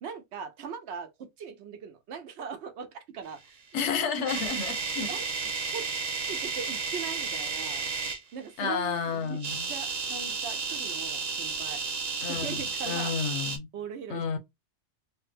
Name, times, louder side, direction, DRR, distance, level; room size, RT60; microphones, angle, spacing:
voice 1, 0.0-3.9 5.1-5.2 5.7-7.9 8.3-11.8 12.3-13.1 13.7-14.4, right 6 dB, 75° right, 0.9 m, -40 dB
voice 2, 3.7-5.1 8.6-9.7 12.2-13.7 14.1-14.4, left 6 dB, 90° left, 1.0 m, -31 dB
sound 1, 3.8-8.2 9.3-13.6, right 5 dB, 45° right, 0.6 m, -32 dB
3.2 x 2.2 x 3.2 m
omnidirectional pair, 1.1 m